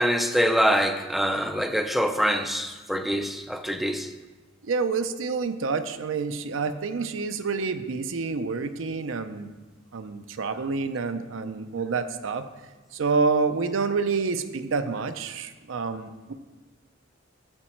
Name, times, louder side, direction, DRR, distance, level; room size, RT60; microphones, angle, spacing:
voice 1, 0.0-4.1, equal, ahead, 6 dB, 0.4 m, -24 dB
voice 2, 4.6-9.5 9.9-12.5 12.9-16.3, right 4 dB, 70° right, 9 dB, 0.5 m, -28 dB
8.7 x 7.3 x 4.5 m, 1.3 s
head